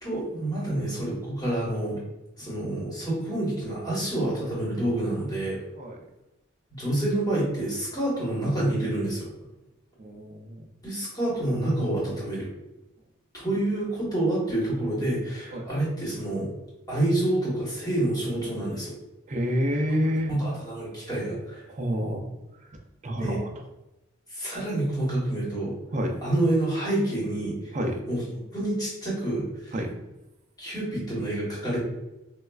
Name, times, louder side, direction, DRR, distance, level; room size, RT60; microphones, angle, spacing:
voice 1, 0.0-2.0 2.4-5.6 6.8-9.3 10.8-12.5 13.3-16.5 16.9-18.9 20.3-21.6 23.1-23.4 24.3-25.7 26.2-27.6 28.1-28.2 28.5-29.7 30.6-31.8, right 1 dB, 20° left, -6 dB, 1.1 m, -28 dB
voice 2, 10.0-10.6 15.5-15.6 19.3-20.3 21.7-22.3 23.0-23.5 25.9-26.2 27.7-28.0 29.7-29.9, equal, 35° right, 2 dB, 0.4 m, -28 dB
4.2 x 2.2 x 2.3 m, 0.97 s
head